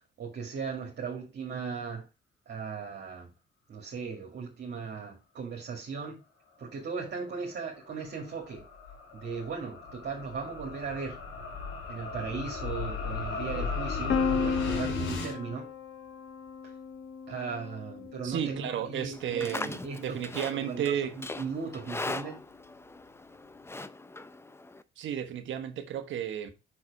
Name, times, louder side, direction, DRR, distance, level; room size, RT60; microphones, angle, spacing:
voice 1, 0.2-2.1 2.5-3.3 3.7-6.2 6.6-8.6 9.1-11.2 11.9-15.7 16.6-16.7 17.3-20.2 20.5-22.4, right 5 dB, 60° right, 2.4 m, -37 dB
sound 1, 7.5-15.3, left 4 dB, 85° left, 2.9 m, -36 dB
Piano, 14.1-19.9, left 5 dB, 65° left, 1.3 m, -34 dB
voice 2, 18.2-21.1 25.0-26.5, right 9 dB, 75° right, 1.4 m, -33 dB
Livestock farm animals working animals, 19.1-24.8, left 2 dB, 10° left, 0.6 m, -40 dB
6.0 x 4.9 x 4.8 m
cardioid pair, 90°, 20 cm